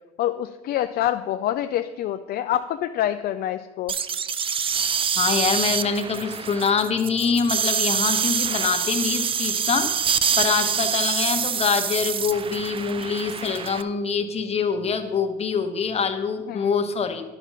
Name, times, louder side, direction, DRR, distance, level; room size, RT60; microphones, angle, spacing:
voice 1, 0.2-3.9 16.5-16.7, left 12 dB, 55° left, 8 dB, 0.4 m, -26 dB
sound 1, 3.9-13.8, right 7 dB, 30° right, 0.4 m, -25 dB
voice 2, 5.2-17.2, left 5 dB, 35° left, 6 dB, 1.2 m, -25 dB
10.0 x 6.1 x 5.6 m, 1.2 s
supercardioid pair, 90°, 19 cm